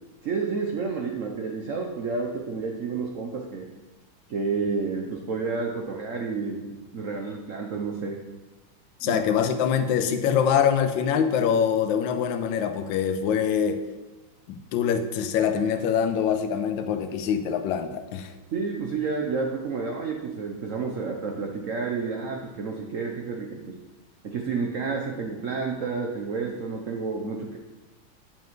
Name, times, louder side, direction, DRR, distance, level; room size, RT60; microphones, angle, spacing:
voice 1, 0.2-3.7 4.3-8.2 9.0-9.2 18.5-23.8 24.2-27.6, right 4 dB, 85° right, 2 dB, 0.7 m, -30 dB
voice 2, 9.0-13.8 14.5-18.3, left 7 dB, 75° left, 8 dB, 1.3 m, -24 dB
9.1 x 7.2 x 3.1 m, 1.1 s
omnidirectional pair, 2.3 m